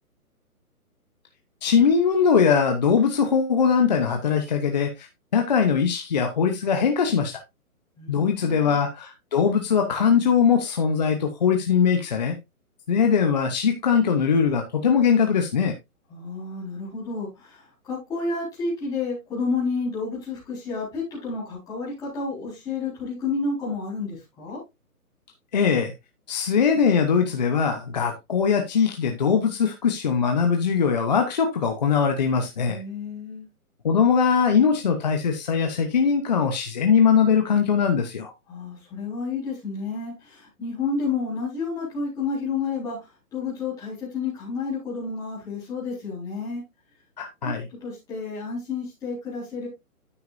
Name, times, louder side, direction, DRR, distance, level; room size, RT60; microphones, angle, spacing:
voice 1, 1.6-5.1 5.3-7.4 8.1-12.3 12.9-15.7 25.5-25.9 26.3-32.8 33.8-38.3 47.2-47.7, left 6 dB, 30° left, 4 dB, 0.8 m, -21 dB
voice 2, 8.0-8.8 16.1-24.6 32.6-33.5 38.5-43.0 43.3-46.6 47.4-47.5 47.8-49.7, left 4 dB, 10° left, -8 dB, 4.4 m, -30 dB
9.6 x 7.8 x 2.6 m, 0.21 s
hypercardioid pair, 170°, 44 cm